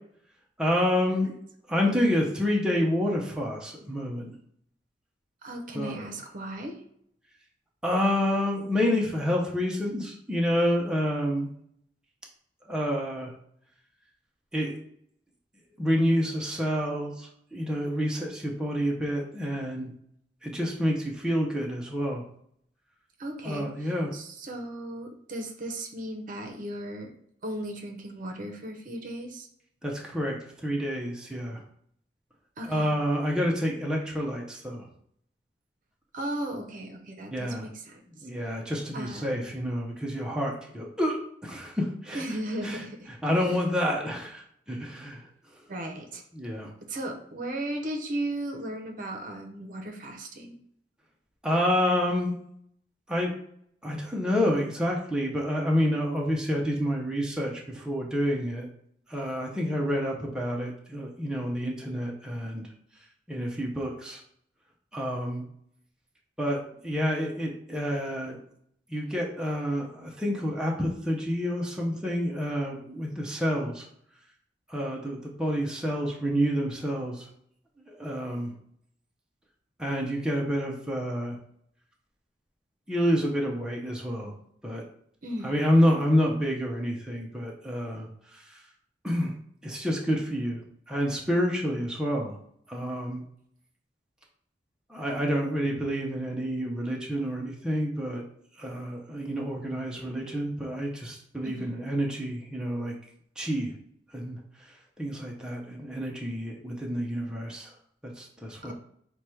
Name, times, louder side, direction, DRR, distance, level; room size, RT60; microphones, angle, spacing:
voice 1, 0.6-1.3 1.7-4.4 5.7-6.0 7.8-11.5 12.7-13.3 14.5-14.8 15.8-19.9 20.4-22.2 23.4-24.1 29.8-31.6 32.7-34.9 37.3-37.7 38.2-42.2 42.6-42.8 43.2-45.2 46.3-46.7 51.4-52.4 53.1-53.3 53.8-58.7 59.1-62.7 63.3-64.2 64.9-65.4 66.4-68.4 68.9-73.9 74.7-77.3 77.9-78.5 79.8-81.4 82.9-84.3 84.6-84.8 85.4-88.6 89.0-89.3 89.6-90.6 90.9-92.4 92.7-93.2 94.9-98.2 98.6-102.9 103.4-103.7 104.1-104.4 105.0-107.7 108.0-108.7, equal, 5° right, -2 dB, 0.5 m, -28 dB
voice 2, 5.4-6.8 23.2-27.1 27.4-29.5 32.6-32.9 36.1-38.0 38.9-39.5 42.1-43.1 45.7-46.2 46.9-50.5 85.2-85.5 101.4-101.7 108.6-108.7, right 1 dB, 50° right, 3 dB, 0.7 m, -36 dB
4.7 x 2.2 x 4.3 m, 0.69 s
head